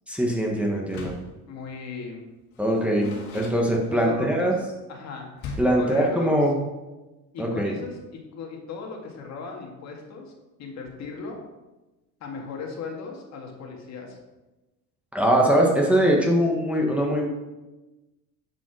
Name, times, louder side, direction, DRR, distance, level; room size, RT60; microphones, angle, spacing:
voice 1, 0.1-1.1 2.6-4.5 5.6-6.5 7.4-7.7 15.1-17.3, right 1 dB, 5° right, -2 dB, 1.2 m, -22 dB
Door, 0.8-1.4 2.5-4.2 5.4-5.9, left 3 dB, 70° left, 2.4 m, -39 dB
voice 2, 1.5-2.2 3.9-4.6 4.9-5.5 5.8-6.4 7.3-10.3 10.6-11.4 12.2-14.2, left 5 dB, 50° left, 1 dB, 1.9 m, -37 dB
10.0 x 5.1 x 4.7 m, 1.1 s
cardioid pair, 135°, 34 cm